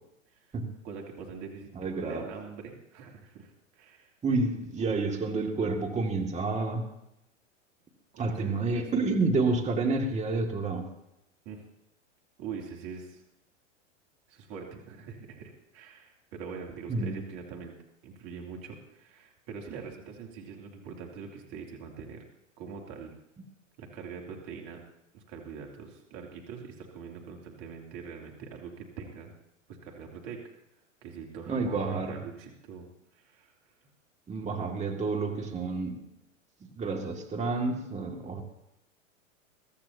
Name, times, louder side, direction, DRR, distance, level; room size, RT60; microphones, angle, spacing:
voice 1, 0.8-4.1 4.8-5.3 8.1-8.9 11.4-11.6 12.4-13.2 14.3-17.7 18.0-22.2 22.6-23.1 23.8-24.8 25.1-29.3 29.8-30.4 31.0-32.9 33.1-33.5, right 6 dB, 45° right, 1 dB, 3.0 m, -43 dB
voice 2, 1.8-2.3 4.2-6.8 8.2-10.9 16.9-17.1 31.5-32.2 34.3-36.0 36.8-38.4, right 3 dB, 15° right, 2 dB, 2.3 m, -29 dB
23.5 x 13.5 x 2.9 m, 0.84 s
hypercardioid pair, 105°, 39 cm